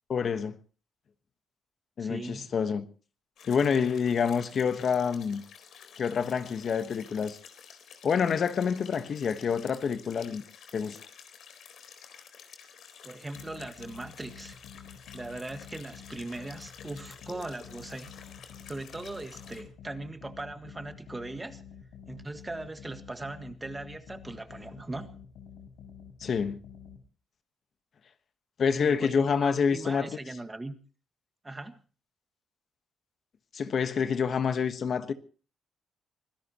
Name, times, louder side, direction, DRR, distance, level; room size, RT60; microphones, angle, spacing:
voice 1, 0.1-0.6 2.0-2.9 3.5-5.4 6.0-7.4 8.0-10.4 10.7-11.0 26.2-26.6 28.6-30.2 33.5-35.1, left 6 dB, 50° left, 1.3 m, -27 dB
voice 2, 2.0-2.5 13.0-14.6 15.1-18.2 18.7-21.6 22.1-25.1 28.8-30.8 31.4-31.8, right 2 dB, 15° right, 1.7 m, -39 dB
sound 1, 3.4-19.6, left 7 dB, 70° left, 4.0 m, -51 dB
sound 2, 13.3-27.0, left 7 dB, 90° left, 4.2 m, -49 dB
25.0 x 16.5 x 3.0 m
cardioid pair, 90°, 0 cm